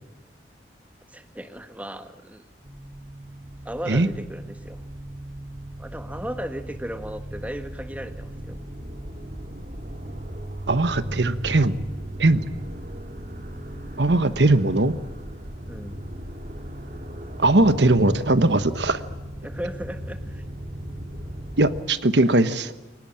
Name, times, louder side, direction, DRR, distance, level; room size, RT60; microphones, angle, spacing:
voice 1, 1.1-2.4 3.6-4.8 5.8-8.5 15.7-16.0 19.4-20.4, equal, 10° right, 8 dB, 1.4 m, -36 dB
sound 1, 2.6-21.8, right 1 dB, 50° right, 2.4 m, -37 dB
voice 2, 10.7-11.8 12.2-12.4 14.0-15.0 17.4-19.0 21.6-22.7, right 2 dB, 75° right, 12 dB, 1.2 m, -19 dB
23.0 x 19.5 x 8.7 m, 1.1 s
head